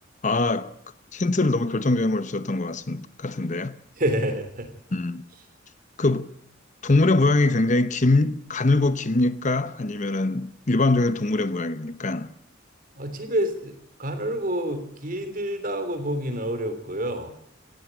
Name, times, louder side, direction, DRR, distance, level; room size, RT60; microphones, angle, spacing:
voice 1, 0.2-0.7 1.1-3.7 4.9-5.2 6.0-6.2 6.8-12.3, left 2 dB, 40° left, 0.9 m, -23 dB
voice 2, 4.0-4.7 13.0-13.7 14.0-17.3, equal, 45° right, 3.5 m, -28 dB
18.5 x 15.5 x 9.0 m
head